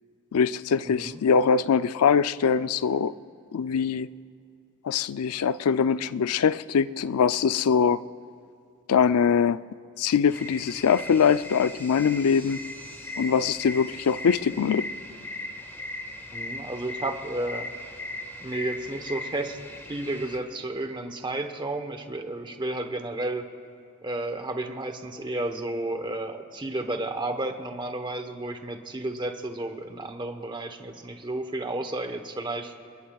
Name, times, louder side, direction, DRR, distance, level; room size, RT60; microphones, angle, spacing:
voice 1, 0.3-3.1 3.5-4.1 4.8-8.0 8.9-9.6 10.0-12.6 13.2-14.9, left 6 dB, 80° left, 15 dB, 0.4 m, -23 dB
voice 2, 0.8-1.2 16.3-17.7 18.4-19.6 19.9-23.4 24.0-32.7, right 2 dB, 20° right, 6 dB, 1.0 m, -32 dB
sound 1, 10.3-20.4, left 1 dB, 10° left, 1.5 m, -38 dB
27.5 x 21.5 x 2.3 m, 2.6 s
head